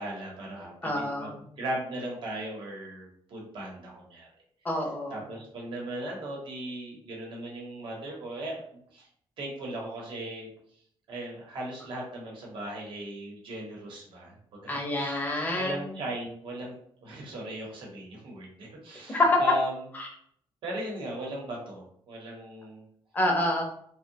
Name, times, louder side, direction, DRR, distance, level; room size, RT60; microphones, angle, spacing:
voice 1, 0.0-4.3 5.1-9.1 9.4-10.5 11.1-15.3 15.5-16.7 17.0-19.8 20.6-22.8, right 1 dB, 60° right, -2 dB, 0.9 m, -38 dB
voice 2, 0.8-1.4 4.6-5.2 14.7-16.0 19.1-19.4 19.9-20.1 23.1-23.6, left 1 dB, 20° left, 0 dB, 0.6 m, -27 dB
2.6 x 2.1 x 2.7 m, 0.66 s
cardioid pair, 145°, 9 cm